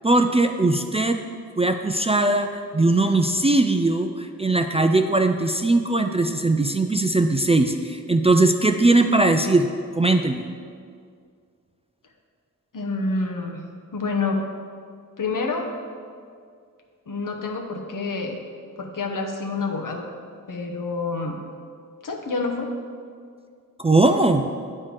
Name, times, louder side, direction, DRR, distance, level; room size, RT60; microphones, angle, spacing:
voice 1, 0.0-1.2 1.6-10.4 23.8-24.5, right 2 dB, 20° right, 5 dB, 0.3 m, -20 dB
voice 2, 12.7-13.6 13.9-14.4 15.2-15.7 17.1-18.4 18.8-20.1 20.5-21.4 22.0-22.7, left 3 dB, 65° left, 2 dB, 1.0 m, -27 dB
9.0 x 4.4 x 4.8 m, 2.2 s
cardioid pair, 55°, 35 cm